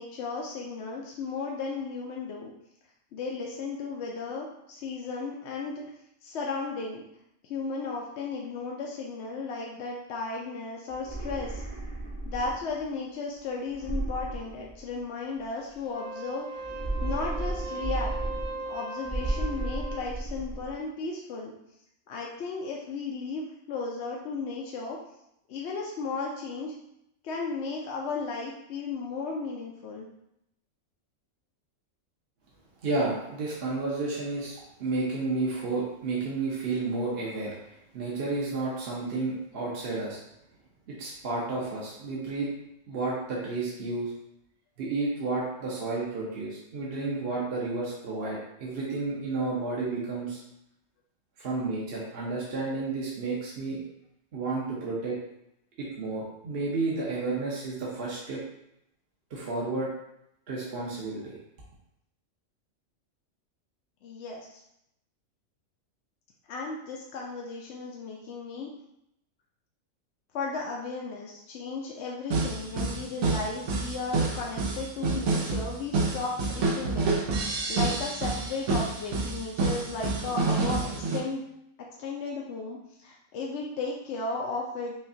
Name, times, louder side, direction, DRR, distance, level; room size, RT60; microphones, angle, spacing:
voice 1, 0.0-2.5 3.1-5.8 6.2-7.0 7.4-11.6 12.3-16.6 17.0-18.1 18.7-21.5 22.1-25.0 25.5-26.7 27.2-30.1 64.0-64.5 66.5-68.7 70.3-77.1 77.7-81.4 81.8-84.9, left 4 dB, 65° left, -2 dB, 0.8 m, -35 dB
sound 1, 10.9-12.8 13.7-15.2 16.6-18.7 19.0-20.7, right 2 dB, 30° right, 0.7 m, -34 dB
Wind instrument woodwind instrument, 15.8-20.1, right 2 dB, 5° left, 0.5 m, -38 dB
voice 2, 32.8-37.5 37.9-40.2 40.9-42.5 42.9-44.1 44.8-50.4 51.4-53.8 54.3-55.1 55.8-58.4 59.3-59.9 60.5-61.3, right 3 dB, 50° right, -5 dB, 0.9 m, -31 dB
sound 2, 72.3-81.2, right 3 dB, 75° right, 1.1 m, -28 dB
5.6 x 2.3 x 2.7 m, 0.80 s
omnidirectional pair, 1.4 m